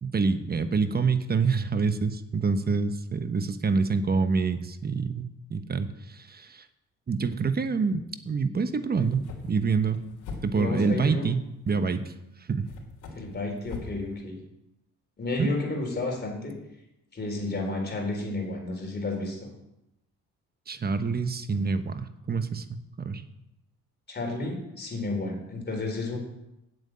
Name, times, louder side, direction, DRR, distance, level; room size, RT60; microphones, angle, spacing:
voice 1, 0.0-6.7 7.1-10.0 10.4-12.1 12.5-12.7 15.4-15.5 20.7-23.2, right 4 dB, 30° right, 10 dB, 1.0 m, -27 dB
sound 1, 8.9-10.9 11.9-12.0 12.6-14.0, left 4 dB, 80° left, 3.0 m, -42 dB
voice 2, 10.5-11.3 13.1-14.4 15.2-16.5 17.1-19.5 24.1-26.2, left 2 dB, 35° left, 1 dB, 3.9 m, -31 dB
7.9 x 7.8 x 8.7 m, 0.88 s
cardioid pair, 90°, 30 cm